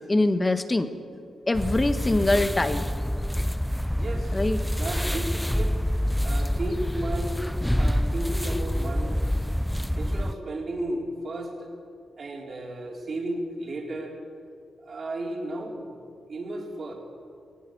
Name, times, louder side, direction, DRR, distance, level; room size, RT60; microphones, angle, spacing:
voice 1, 0.1-0.9 1.5-2.9 4.3-4.6, left 2 dB, 20° left, 10 dB, 1.3 m, -23 dB
sound 1, 1.5-10.3, equal, ahead, 0.4 m, -27 dB
voice 2, 3.9-4.4 4.7-5.9 6.2-7.4 7.8-9.2 9.9-11.7 12.2-14.1 14.8-15.9 16.3-16.9, right 1 dB, 45° right, 0 dB, 4.3 m, -34 dB
19.5 x 19.0 x 7.8 m, 2.3 s
cardioid pair, 110°, 0 cm